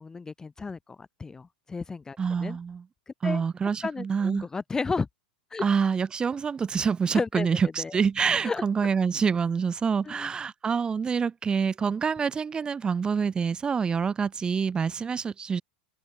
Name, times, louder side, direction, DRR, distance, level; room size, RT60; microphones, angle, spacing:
voice 1, 0.0-2.6 3.2-3.4 3.8-5.1 5.5-5.6 7.1-7.5 7.8-7.9 8.4-8.6 10.0-10.3, left 4 dB, 10° left, 1.0 m, -33 dB
voice 2, 2.2-2.8 3.2-4.5 5.6-15.6, right 6 dB, 15° right, 1.4 m, -26 dB
figure-of-eight pair, 90°, 5 cm